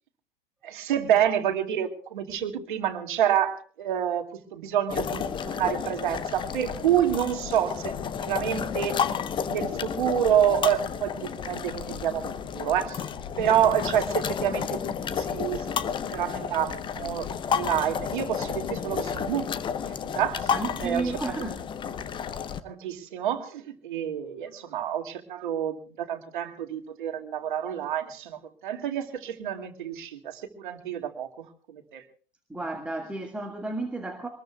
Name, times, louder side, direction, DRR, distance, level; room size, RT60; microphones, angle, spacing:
voice 1, 0.6-7.9 8.2-8.9 9.4-13.1 13.4-19.5 20.2-20.5 20.8-21.1 22.6-32.0, right 10 dB, 55° right, 6 dB, 2.3 m, -28 dB
sound 1, 4.9-22.6, left 7 dB, 15° left, 0.8 m, -31 dB
voice 2, 20.5-21.6 32.5-34.3, right 3 dB, 5° right, 3 dB, 1.6 m, -32 dB
25.0 x 20.5 x 2.3 m, 0.41 s
figure-of-eight pair, 95°, 29 cm